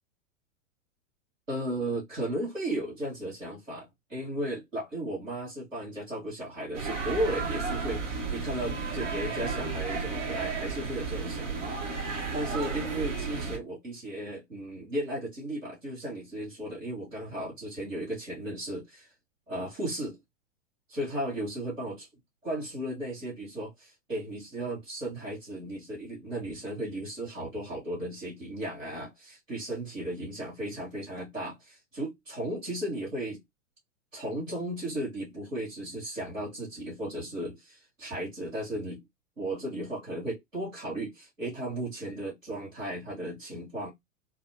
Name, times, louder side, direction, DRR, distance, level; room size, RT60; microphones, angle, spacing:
voice 1, 1.5-19.1 19.5-20.2 20.9-22.1 22.4-33.4 34.1-39.0 39.4-43.9, right 1 dB, 85° right, 2.3 m, -35 dB
sound 1, 6.7-13.6, right 4 dB, 65° right, 1.4 m, -33 dB
4.0 x 2.2 x 2.8 m
figure-of-eight pair, 95°, 38 cm